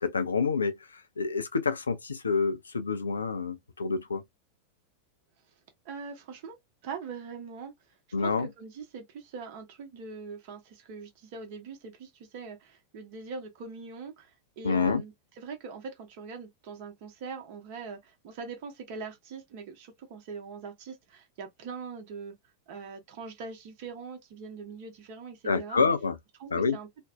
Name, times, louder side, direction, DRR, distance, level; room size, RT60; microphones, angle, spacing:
voice 1, 0.0-4.2 8.1-8.5 14.6-15.0 25.4-26.2 26.5-26.8, left 4 dB, 75° left, 0.4 m, -28 dB
voice 2, 5.8-6.6 6.8-7.7 8.2-22.3 22.7-25.8 26.4-26.9, right 5 dB, 50° right, 0.8 m, -42 dB
2.5 x 2.0 x 2.4 m
figure-of-eight pair, 90°, 0 cm